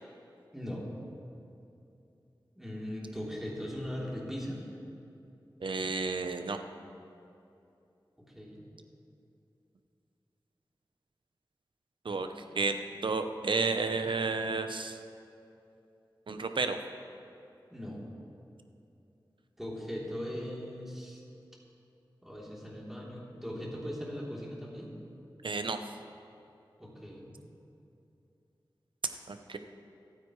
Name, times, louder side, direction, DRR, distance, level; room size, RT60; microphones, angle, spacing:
voice 1, 0.5-0.9 2.5-4.7 8.3-8.6 17.7-18.0 19.6-21.2 22.2-24.9 26.8-27.3, equal, 5° right, -5 dB, 3.4 m, -39 dB
voice 2, 5.6-6.6 12.0-12.7 13.0-15.0 16.3-16.8 25.4-25.8 29.3-29.6, right 4 dB, 75° right, 7 dB, 0.8 m, -31 dB
27.0 x 9.1 x 3.2 m, 2.8 s
wide cardioid pair, 65°, 8 cm